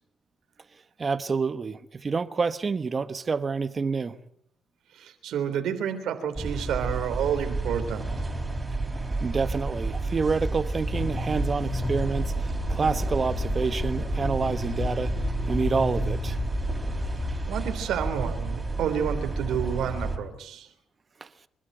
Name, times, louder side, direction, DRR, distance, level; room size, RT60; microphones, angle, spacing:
voice 1, 1.0-4.1 9.2-15.1 15.5-16.4 21.2-21.3, right 4 dB, 35° right, 1.1 m, -28 dB
voice 2, 4.9-8.1 17.5-20.7, right 8 dB, 80° right, 3.4 m, -29 dB
sound 1, 6.4-20.2, right 2 dB, 15° right, 4.0 m, -31 dB
Motor vehicle (road), 10.8-17.5, left 3 dB, 60° left, 5.1 m, -33 dB
26.5 x 12.5 x 9.3 m
cardioid pair, 90°, 0 cm